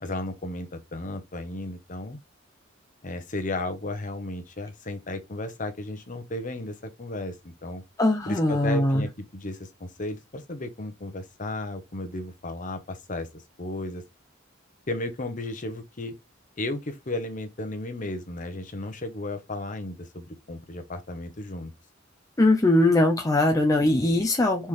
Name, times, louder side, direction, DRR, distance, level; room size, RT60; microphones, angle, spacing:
voice 1, 0.0-2.2 3.0-7.8 8.3-14.0 14.9-16.1 16.6-21.7, left 2 dB, 45° left, 0.9 m, -34 dB
voice 2, 8.0-9.1 22.4-24.7, left 1 dB, 20° left, 0.6 m, -21 dB
4.3 x 3.7 x 3.2 m
head